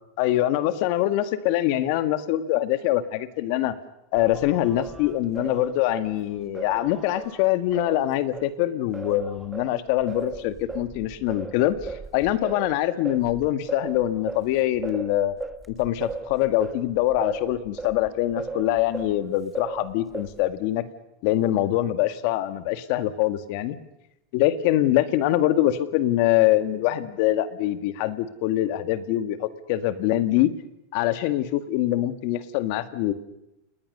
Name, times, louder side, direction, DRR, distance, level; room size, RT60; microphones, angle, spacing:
voice 1, 0.2-3.7 4.1-11.8 12.1-15.3 15.7-20.8 21.2-23.8 24.3-30.5 30.9-33.1, left 14 dB, 60° left, 11 dB, 1.9 m, -24 dB
Singing, 4.2-8.5 8.9-19.2 19.5-20.6, right 3 dB, 10° right, 1.5 m, -37 dB
29.0 x 19.5 x 6.8 m, 0.88 s
supercardioid pair, 130°, 0 cm